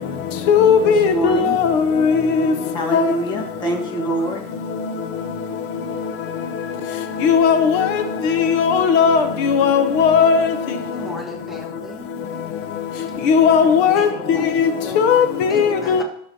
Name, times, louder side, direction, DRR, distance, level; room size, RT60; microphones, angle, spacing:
voice 1, 0.5-2.5 2.9-3.0 7.2-7.9 8.2-10.5 13.3-14.1 14.6-14.7 15.0-15.3 15.5-16.0, left 6 dB, 80° left, 0.8 m, -16 dB
voice 2, 1.1-1.6 2.7-4.4, right 1 dB, 30° left, 1.5 m, -24 dB
voice 3, 10.9-12.1 14.0-14.5 14.8-16.0, right 1 dB, ahead, 1.3 m, -36 dB
13.0 x 6.8 x 2.8 m
cardioid pair, 165°, 16 cm